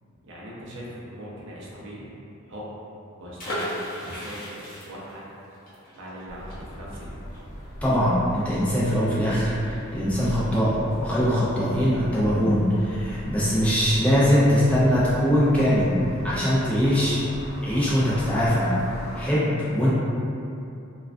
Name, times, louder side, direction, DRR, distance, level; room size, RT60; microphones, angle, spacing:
voice 1, 0.2-2.1 2.5-2.7 3.2-5.2 5.9-7.1, equal, 60° right, -7 dB, 0.5 m, -40 dB
sound 1, 3.4-9.0 9.3-9.4 9.7-10.0, equal, 45° left, 0.7 m, -36 dB
sound 2, 6.3-19.2, equal, 80° left, 0.4 m, -38 dB
voice 2, 7.8-16.0 16.2-17.2 17.6-18.7 19.2-19.9, equal, 5° left, -10 dB, 0.4 m, -22 dB
2.3 x 2.2 x 2.4 m, 2.6 s
head